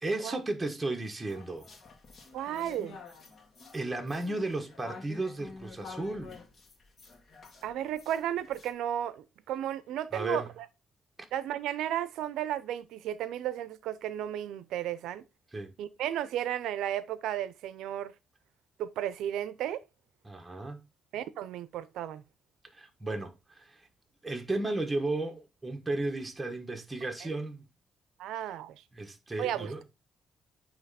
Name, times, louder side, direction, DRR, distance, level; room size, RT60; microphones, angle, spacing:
voice 1, 0.0-1.7 3.7-6.4 10.1-10.5 15.5-15.7 20.2-20.8 22.7-23.9 24.2-27.6 28.9-29.8, right 2 dB, 15° right, 1.2 m, -34 dB
sound 1, 1.3-8.7, left 4 dB, 45° left, 1.7 m, -49 dB
voice 2, 2.3-3.0 7.6-10.6 11.3-15.2 15.8-18.1 18.8-19.8 21.1-22.2 28.2-28.8 29.4-29.8, right 11 dB, 85° right, 0.6 m, -34 dB
9.2 x 3.1 x 4.1 m
cardioid pair, 90°, 0 cm